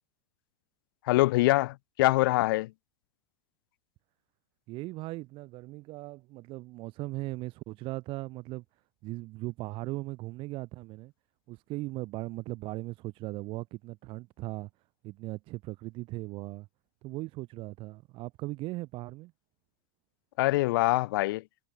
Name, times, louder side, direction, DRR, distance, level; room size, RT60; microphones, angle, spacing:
voice 1, 1.1-2.7 20.4-21.4, left 19 dB, 65° left, 2.7 m, -24 dB
voice 2, 4.7-8.6 9.0-11.1 11.5-14.7 15.0-16.7 17.0-19.3, right 20 dB, 45° right, 4.3 m, -38 dB
supercardioid pair, 125°, 12 cm